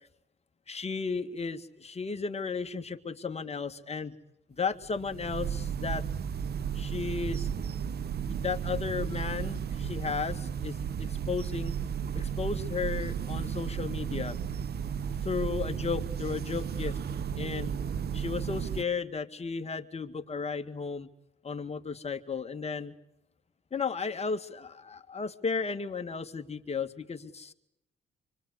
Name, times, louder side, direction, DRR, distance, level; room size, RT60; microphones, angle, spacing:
voice 1, 0.7-4.2 4.5-6.0 6.7-7.7 8.3-11.7 12.1-14.4 15.2-17.0 17.4-17.7 18.1-21.1 21.4-22.9 23.7-27.5, left 5 dB, 30° left, 6 dB, 2.1 m, -34 dB
sound 1, 4.7-18.8, right 7 dB, 55° right, 1.1 m, -34 dB
27.5 x 24.0 x 8.2 m, 0.82 s
cardioid pair, 90°, 20 cm